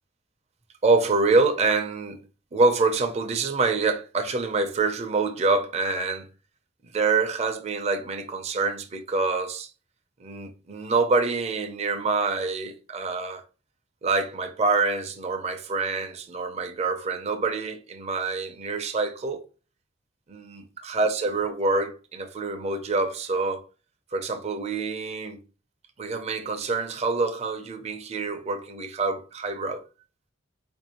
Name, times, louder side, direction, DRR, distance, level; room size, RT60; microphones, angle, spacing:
voice 1, 0.8-2.2 2.5-6.3 6.8-9.7 10.2-13.4 14.0-19.4 20.3-23.6 24.1-25.4 26.0-29.8, right 3 dB, 35° right, 0.5 m, -26 dB
4.7 x 2.6 x 2.9 m
head